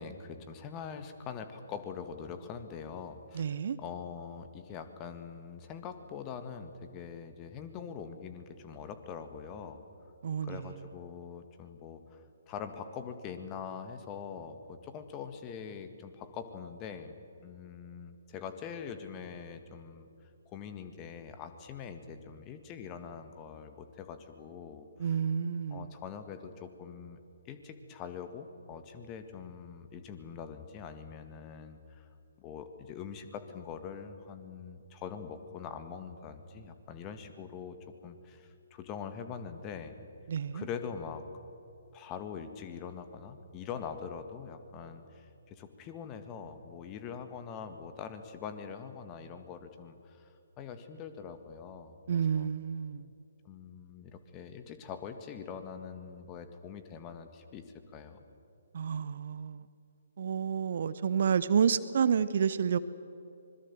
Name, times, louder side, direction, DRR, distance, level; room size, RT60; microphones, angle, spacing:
voice 1, 0.0-3.5 3.8-9.8 10.4-17.2 17.4-20.1 20.5-25.2 25.7-27.2 27.5-32.1 32.4-40.0 40.5-41.3 41.9-50.3 50.6-52.5 53.5-57.7 57.9-58.2, left 7 dB, 25° left, 9 dB, 1.9 m, -43 dB
voice 2, 3.3-3.8 10.2-10.7 25.0-25.9 40.3-40.6 52.1-53.1 58.7-59.7 60.2-62.8, right 7 dB, 50° right, 15 dB, 0.8 m, -29 dB
25.5 x 21.5 x 7.5 m, 2.7 s
figure-of-eight pair, 135°, 0 cm